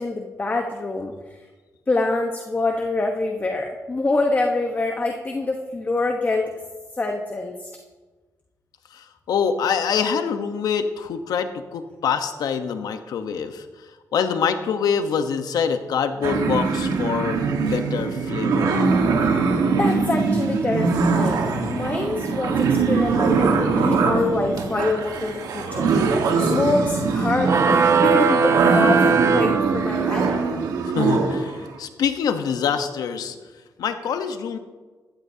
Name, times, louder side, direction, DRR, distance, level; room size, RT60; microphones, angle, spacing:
voice 1, 0.0-1.4 1.9-6.5 6.9-7.7 19.8-30.4, left 2 dB, 25° left, 2 dB, 1.1 m, -25 dB
voice 2, 8.9-13.7 14.1-17.4 17.7-18.9 30.9-33.4 33.8-34.6, left 6 dB, 80° left, 8 dB, 1.0 m, -25 dB
sound 1, 16.2-31.6, right 4 dB, 90° right, 1.5 m, -22 dB
sound 2, 27.4-30.3, right 5 dB, 50° right, 0.8 m, -19 dB
15.5 x 13.0 x 2.8 m, 1.3 s
cardioid pair, 90°, 6 cm